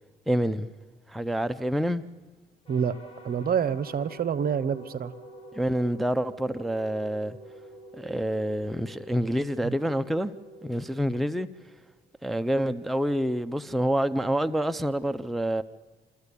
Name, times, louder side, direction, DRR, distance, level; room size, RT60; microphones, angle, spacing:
voice 1, 0.3-0.7 1.1-2.0 5.5-7.4 7.9-10.3 10.6-11.5 12.2-15.6, equal, ahead, 0.6 m, -27 dB
sound 1, 2.7-12.0, right 1 dB, 30° left, 4.5 m, -47 dB
voice 2, 3.2-5.1 9.6-9.7, right 7 dB, 50° right, 0.9 m, -27 dB
27.5 x 13.0 x 8.4 m
cardioid pair, 90°, 20 cm